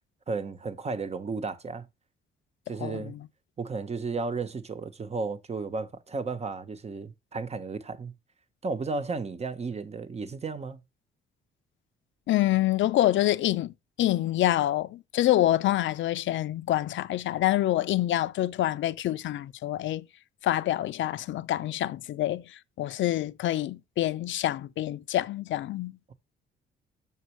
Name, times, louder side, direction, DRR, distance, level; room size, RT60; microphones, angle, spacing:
voice 1, 0.3-1.9 2.7-3.1 3.6-8.1 8.6-10.8, right 4 dB, 30° right, 1.1 m, -33 dB
voice 2, 2.8-3.3 12.3-13.7 14.0-20.1 20.4-25.9, left 14 dB, 70° left, 0.6 m, -26 dB
7.1 x 6.5 x 3.1 m
cardioid pair, 90°, 20 cm